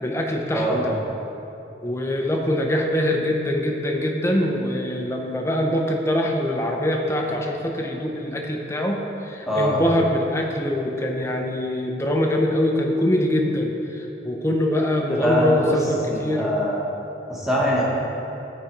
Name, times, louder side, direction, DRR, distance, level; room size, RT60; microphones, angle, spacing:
voice 1, 0.0-0.9 1.8-16.5, left 1 dB, 15° left, 1 dB, 0.6 m, -23 dB
voice 2, 0.5-0.9 9.5-9.8 15.1-15.8 16.1-16.8 17.3-17.8, equal, ahead, -6 dB, 1.3 m, -23 dB
11.5 x 4.2 x 4.6 m, 3.0 s
head